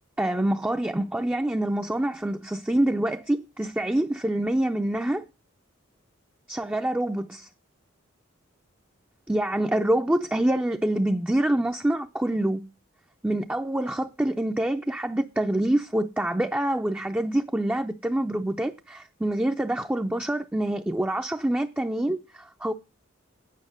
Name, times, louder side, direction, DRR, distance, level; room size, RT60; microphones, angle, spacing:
voice 1, 0.2-5.3 6.5-7.5 9.3-12.6 13.2-22.7, right 1 dB, 10° right, 0.4 m, -26 dB
9.4 x 5.6 x 6.4 m
head